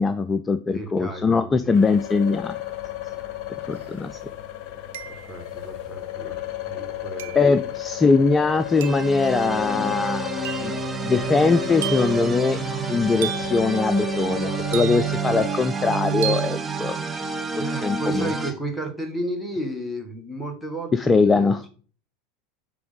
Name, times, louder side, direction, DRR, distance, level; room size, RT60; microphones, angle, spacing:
voice 1, 0.0-2.6 3.7-4.2 7.4-10.8 11.0-12.6 12.9-17.0 17.6-18.3 20.9-21.6, left 4 dB, 20° left, 12 dB, 0.4 m, -21 dB
voice 2, 0.7-1.8 5.1-7.5 17.6-21.7, right 1 dB, ahead, 2 dB, 1.8 m, -33 dB
sound 1, 1.7-15.5, left 14 dB, 50° left, 0.9 m, -34 dB
sound 2, 3.8-3.9 4.9-5.5 7.2-7.5 8.8-9.1 10.4-10.8 11.8-12.2 13.2-13.6 14.7-15.3 16.2-16.6, right 11 dB, 70° right, 0.5 m, -33 dB
sound 3, 8.6-18.5, right 5 dB, 20° right, 0.8 m, -28 dB
6.1 x 3.5 x 5.2 m, 0.41 s
hypercardioid pair, 85°, 0 cm